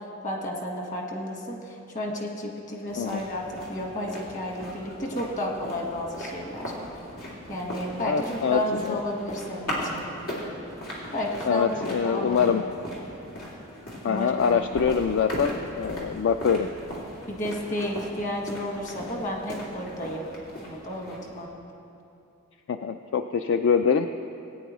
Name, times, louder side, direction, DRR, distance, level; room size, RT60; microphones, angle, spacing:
voice 1, 0.2-3.4 3.7-6.7 7.5-10.1 11.1-12.6 14.0-14.8 17.3-20.3 20.6-21.5, left 1 dB, 35° left, 0 dB, 1.5 m, -32 dB
sound 1, 2.9-21.4, equal, 85° left, 2.6 m, -38 dB
voice 2, 8.0-8.6 8.9-9.0 11.5-12.6 14.0-16.7 22.7-24.1, left 6 dB, 55° left, 8 dB, 0.3 m, -24 dB
19.0 x 9.2 x 3.1 m, 2.7 s
head